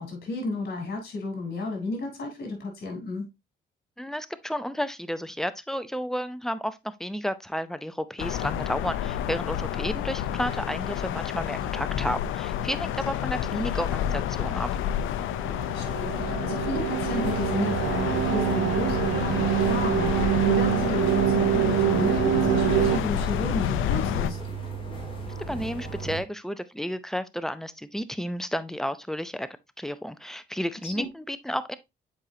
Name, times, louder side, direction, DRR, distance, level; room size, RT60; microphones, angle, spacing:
voice 1, 0.0-3.3 15.7-24.4 30.8-31.1, left 2 dB, 55° left, 3.7 m, -33 dB
voice 2, 4.0-14.7 25.5-29.5 29.8-31.8, equal, ahead, 0.6 m, -32 dB
sound 1, 8.2-24.3, left 10 dB, 85° left, 0.6 m, -29 dB
sound 2, 15.2-23.0, right 12 dB, 80° right, 0.8 m, -25 dB
sound 3, 17.2-26.2, right 5 dB, 25° left, 2.8 m, -36 dB
7.5 x 4.8 x 2.8 m
cardioid pair, 90°, 20 cm